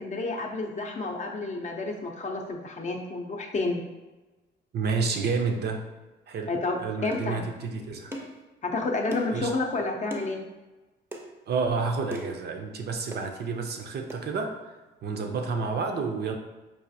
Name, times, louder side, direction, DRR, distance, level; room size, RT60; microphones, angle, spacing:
voice 1, 0.0-3.8 6.5-7.4 8.6-10.4, left 3 dB, 35° left, 2 dB, 0.5 m, -30 dB
voice 2, 4.7-5.9 6.3-6.5 6.8-8.1 9.3-9.5 11.5-14.6 15.0-16.4, right 4 dB, 55° right, 4 dB, 0.5 m, -29 dB
sound 1, 7.1-7.3 8.1-8.4 9.1-9.4 10.1-10.3 11.1-11.3 12.1-12.4 13.1-13.3 14.1-14.2, right 1 dB, 10° right, 0.6 m, -37 dB
4.8 x 2.4 x 2.6 m, 1.1 s
cardioid pair, 90°, 20 cm